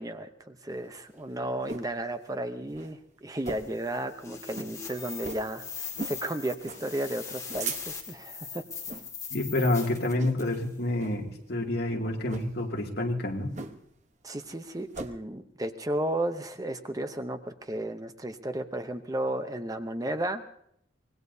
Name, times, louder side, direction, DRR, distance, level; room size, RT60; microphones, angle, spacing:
voice 1, 0.0-8.6 14.2-20.4, right 1 dB, 20° right, 8 dB, 0.7 m, -33 dB
sound 1, 0.7-1.9 2.3-2.4 2.7-2.9 3.4-3.8 4.1-4.2 4.5-4.7 5.2-5.5 5.9-6.2 6.6-6.8 7.3-8.2 8.8-9.1 9.5-9.7 10.2-10.6 11.0-11.2 12.2-12.5 13.5-14.0 14.3-15.1, right 4 dB, 40° right, 1.1 m, -39 dB
sound 2, 3.5-10.7, left 5 dB, 15° left, 1.8 m, -41 dB
voice 2, 9.3-13.5, left 1 dB, 55° left, 0 dB, 2.4 m, -28 dB
24.5 x 19.5 x 2.7 m, 0.70 s
head